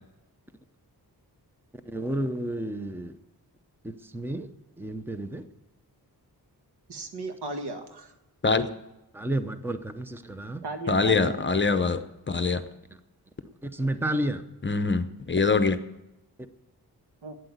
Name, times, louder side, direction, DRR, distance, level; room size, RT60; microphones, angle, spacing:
voice 1, 1.9-3.1 3.8-4.5 4.8-5.5 9.1-10.6 12.9-13.0 13.6-14.4, right 1 dB, 5° right, 0.7 m, -31 dB
voice 2, 6.9-8.1 10.6-11.4 17.2-17.3, right 2 dB, 90° right, 1.7 m, -35 dB
voice 3, 10.9-12.0 12.3-12.6 14.7-15.8, left 4 dB, 30° left, 0.8 m, -23 dB
12.0 x 9.1 x 9.4 m
wide cardioid pair, 135°, 38 cm